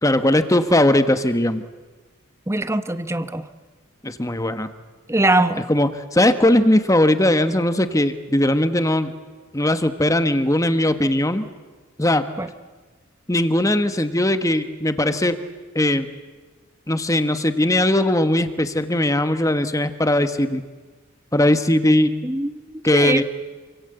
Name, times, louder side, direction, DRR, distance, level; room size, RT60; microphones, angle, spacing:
voice 1, 0.0-1.6 4.0-4.7 5.7-9.1 9.5-11.4 12.0-12.2 13.3-15.4 15.7-16.1 16.9-20.6 21.3-22.1 22.8-23.2, left 1 dB, 15° left, 10 dB, 1.3 m, -19 dB
voice 2, 2.5-3.5 5.1-5.6 12.4-12.5 22.2-23.2, right 2 dB, 15° right, 12 dB, 0.9 m, -22 dB
27.0 x 25.5 x 8.0 m, 1.3 s
head